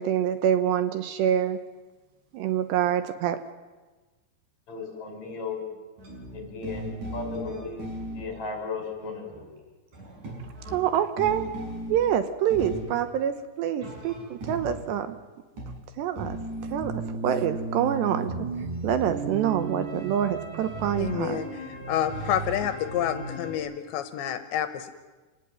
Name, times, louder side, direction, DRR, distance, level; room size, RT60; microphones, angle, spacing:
voice 1, 0.0-1.6 2.3-3.4 10.7-11.4 11.9-15.2 16.0-16.4 16.7-16.9 17.2-18.3 18.8-21.4, right 10 dB, 75° right, 10 dB, 3.1 m, -26 dB
voice 2, 4.7-5.6 6.3-9.5, left 4 dB, 35° left, 2 dB, 6.8 m, -36 dB
sound 1, 5.7-8.3 8.9-9.0 9.3-9.6 9.9-12.2 12.5-13.1 13.8-15.0 15.6-23.6, right 2 dB, 40° right, 7.8 m, -36 dB
voice 3, 21.0-21.5 21.9-24.9, left 10 dB, 80° left, 9 dB, 3.2 m, -28 dB
27.5 x 18.5 x 9.2 m, 1.3 s
omnidirectional pair, 5.3 m